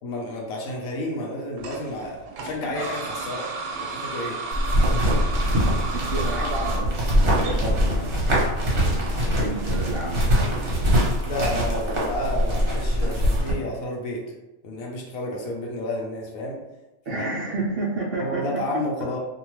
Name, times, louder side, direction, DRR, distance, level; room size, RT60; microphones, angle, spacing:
voice 1, 0.0-4.4 11.2-14.2 14.6-16.6 17.1-17.2 18.2-19.2, left 1 dB, 75° left, -1 dB, 1.1 m, -31 dB
sound 1, 1.6-13.5, right 3 dB, 90° right, 1.0 m, -36 dB
sound 2, 4.5-13.5, equal, 45° right, 0.9 m, -23 dB
voice 2, 5.9-8.4 9.3-10.7 17.0-18.8, right 2 dB, 65° right, -6 dB, 0.6 m, -31 dB
2.7 x 2.2 x 2.9 m, 0.99 s
omnidirectional pair, 1.5 m